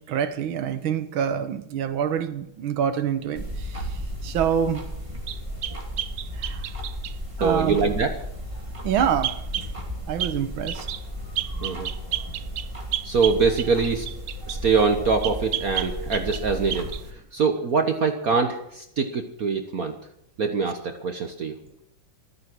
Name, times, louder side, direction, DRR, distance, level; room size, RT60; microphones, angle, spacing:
voice 1, 0.0-4.8 6.3-6.7 7.4-7.8 8.8-9.4 10.1-10.9, right 8 dB, 80° right, 1.9 m, -26 dB
sound 1, 3.4-17.1, equal, 15° right, 2.7 m, -34 dB
sound 2, 5.3-7.2 9.2-9.7 10.2-10.4 10.7-11.0 11.4-14.6 15.2-16.4 16.7-17.0, right 12 dB, 65° right, 1.1 m, -31 dB
voice 2, 7.4-8.1 11.6-11.9 13.0-14.1 14.5-19.9 20.4-21.6, right 4 dB, 50° right, 1.4 m, -24 dB
14.5 x 13.5 x 6.1 m
omnidirectional pair, 2.2 m